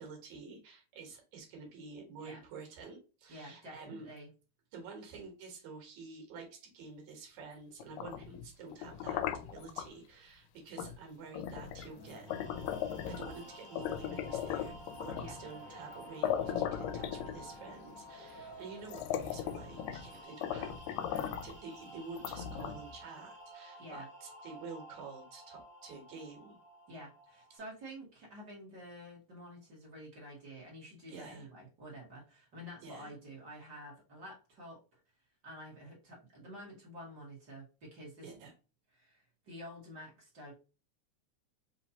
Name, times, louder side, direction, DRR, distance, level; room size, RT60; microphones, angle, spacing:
voice 1, 0.0-4.1 4.7-9.2 9.5-12.3 13.1-20.8 21.1-26.6 31.1-31.5 32.8-33.1 38.2-38.5, right 4 dB, 70° right, 2 dB, 2.6 m, -49 dB
voice 2, 3.3-4.3 15.1-15.4 23.8-24.1 26.9-34.8 35.4-38.3 38.9-40.5, equal, 40° right, -4 dB, 1.8 m, -49 dB
sound 1, 7.8-9.9 10.8-11.0 11.3-13.4 13.8-15.4 15.9-16.0 16.2-17.7 18.4-18.5 18.8-20.1 20.4-21.6 22.2-23.0, left 10 dB, 80° left, 1.7 m, -37 dB
sound 2, 11.5-20.2, left 1 dB, 40° left, 1.1 m, -55 dB
sound 3, 12.3-27.6, right 1 dB, 15° right, 1.3 m, -52 dB
5.5 x 2.8 x 2.8 m, 0.33 s
omnidirectional pair, 3.5 m